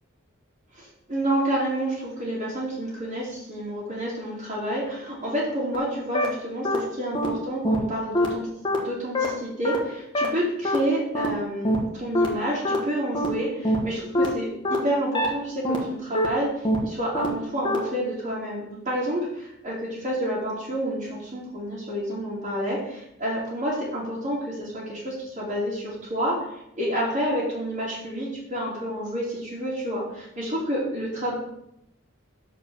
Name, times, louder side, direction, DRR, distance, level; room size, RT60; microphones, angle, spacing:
voice 1, 0.7-8.5 8.8-31.4, equal, 35° right, -9 dB, 2.5 m, -29 dB
sound 1, 5.7-5.8 6.1-6.3 6.6-6.8 7.1-7.3 7.6-7.8 8.1-8.3 8.6-8.8 9.1-9.3 9.6-9.8 10.1-10.3 10.6-10.8 11.1-11.3 11.6-11.8 12.1-12.3 12.6-12.8 13.1-13.3 13.6-13.8 14.1-14.3 14.6-14.8 15.1-15.3 15.6-15.8 16.1-16.3 16.6-16.8 17.1-17.3 17.6-17.8, left 1 dB, 25° left, 1.4 m, -22 dB
6.5 x 4.9 x 6.9 m, 0.79 s
head